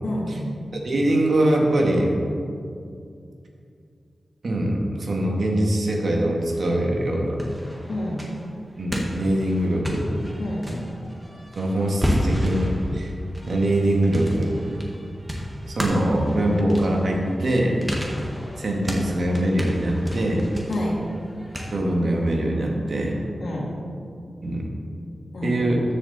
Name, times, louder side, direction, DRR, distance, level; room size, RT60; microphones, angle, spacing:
voice 1, 0.0-0.5 7.9-8.2 10.4-10.9 20.7-21.0 23.4-23.7 25.3-25.8, left 1 dB, 80° left, -3 dB, 2.6 m, -29 dB
voice 2, 0.7-2.1 4.4-7.4 8.8-10.1 11.6-13.1 13.5-14.7 15.8-17.9 18.6-20.4 21.7-23.2 24.4-24.7 25.4-25.8, right 1 dB, 65° right, 0 dB, 2.0 m, -23 dB
sound 1, 6.5-7.1 7.4-21.7, equal, 5° right, 1.7 m, -32 dB
13.5 x 8.0 x 4.3 m, 2.4 s
wide cardioid pair, 110°, 0 cm